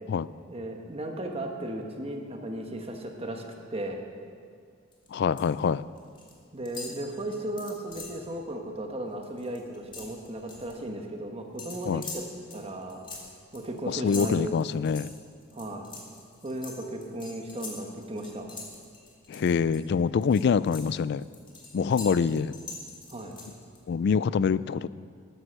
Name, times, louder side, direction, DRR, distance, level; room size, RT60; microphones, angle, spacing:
voice 1, 0.5-3.4 3.7-4.0 6.5-12.2 12.5-13.0 13.5-14.5 15.5-15.9 16.4-18.5 23.1-23.4, right 1 dB, 30° right, 3 dB, 1.2 m, -35 dB
sound 1, 4.9-5.6 5.9-6.4 6.7-8.2 8.7-8.8 9.1-10.7 11.6-19.8 20.2-23.8, left 4 dB, 25° left, 2.0 m, -43 dB
voice 2, 5.1-5.8 11.9-12.0 13.9-15.1 19.3-21.2 21.7-22.5 23.9-24.9, left 6 dB, 60° left, 18 dB, 0.3 m, -25 dB
12.5 x 9.8 x 6.3 m, 2.2 s
head